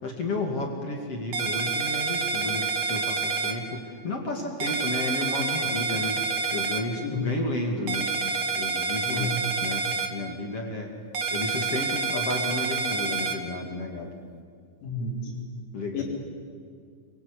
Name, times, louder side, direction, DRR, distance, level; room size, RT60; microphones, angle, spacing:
voice 1, 0.0-6.2 6.5-8.1 8.6-9.3 9.6-10.9 11.3-14.1 15.7-16.0, left 2 dB, 45° left, 1 dB, 2.3 m, -32 dB
sound 1, 1.3-3.5 4.6-6.8 7.9-10.1 11.1-13.3, right 5 dB, 65° right, 1.3 m, -28 dB
voice 2, 14.8-15.4 15.9-16.0, left 3 dB, 80° left, -1 dB, 6.7 m, -31 dB
25.0 x 23.0 x 8.3 m, 2.1 s
omnidirectional pair, 5.6 m